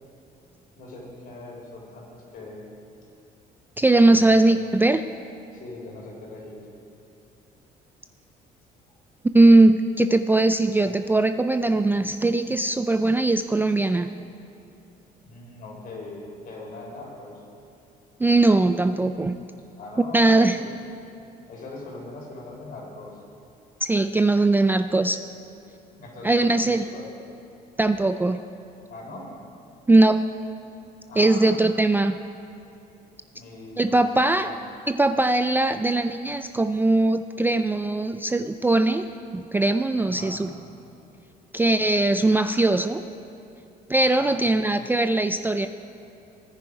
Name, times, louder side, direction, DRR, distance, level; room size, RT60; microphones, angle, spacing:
voice 1, 0.7-2.6 4.0-4.3 5.5-6.7 15.2-17.4 19.8-20.7 21.5-23.2 26.0-27.1 28.9-29.3 31.1-31.7 33.3-34.6 40.0-40.6 44.2-44.5, left 2 dB, 55° left, -1 dB, 3.7 m, -41 dB
voice 2, 3.8-5.0 9.3-14.1 18.2-19.4 20.1-20.6 23.8-25.2 26.2-26.9 27.8-28.4 29.9-30.2 31.2-32.2 33.8-34.6 34.9-40.5 41.5-43.0 43.9-45.7, right 2 dB, 10° right, 9 dB, 0.4 m, -20 dB
17.5 x 10.0 x 4.9 m, 2.6 s
cardioid pair, 110°, 17 cm